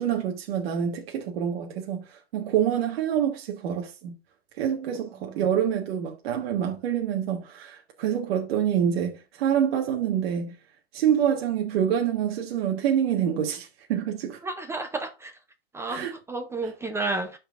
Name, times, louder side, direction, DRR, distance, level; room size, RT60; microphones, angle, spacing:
voice 1, 0.0-4.2 4.6-10.6 10.9-14.4 15.9-16.1, right 9 dB, 70° right, 1.4 m, -26 dB
voice 2, 5.1-5.5 14.4-15.4 15.7-17.4, right 2 dB, 10° right, 0.4 m, -32 dB
12.5 x 4.4 x 2.4 m
supercardioid pair, 145°, 31 cm